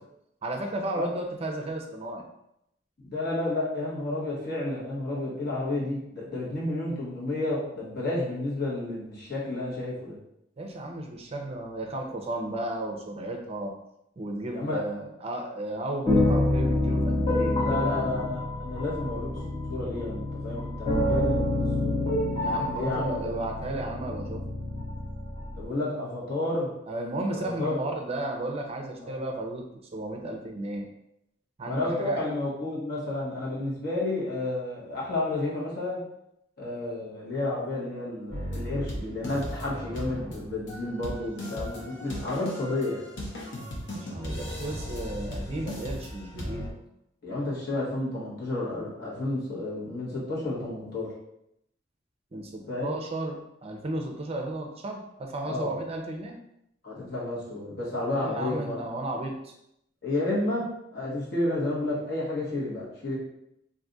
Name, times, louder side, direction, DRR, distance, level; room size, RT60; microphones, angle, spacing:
voice 1, 0.4-2.2 10.6-13.7 14.2-18.1 22.4-24.4 26.9-29.6 29.9-30.9 31.6-32.2 43.9-46.7 52.3-56.3 58.2-59.5, right 1 dB, 35° right, 2 dB, 0.5 m, -34 dB
voice 2, 3.0-10.2 14.5-14.8 17.5-19.3 19.7-22.0 22.7-23.3 25.6-26.7 27.3-27.8 29.0-29.2 31.6-36.0 36.6-43.0 47.2-51.1 52.7-53.0 55.5-55.7 56.8-58.8 60.0-60.6 60.9-63.2, left 2 dB, 55° left, -5 dB, 1.2 m, -31 dB
sound 1, 16.1-25.7, left 1 dB, 30° left, 0.8 m, -27 dB
sound 2, 38.3-46.7, equal, 75° left, 0.8 m, -37 dB
2.6 x 2.4 x 3.8 m, 0.80 s
head